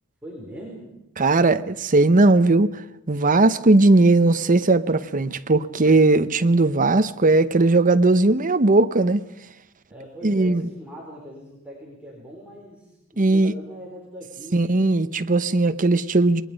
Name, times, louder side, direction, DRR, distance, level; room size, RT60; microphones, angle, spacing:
voice 1, 0.2-0.9 9.9-14.7, equal, 5° right, 4.5 m, -40 dB
voice 2, 1.2-2.7 3.1-9.2 10.2-10.6 13.2-13.5 14.5-16.4, right 2 dB, 35° right, 0.9 m, -18 dB
28.0 x 21.0 x 5.2 m
head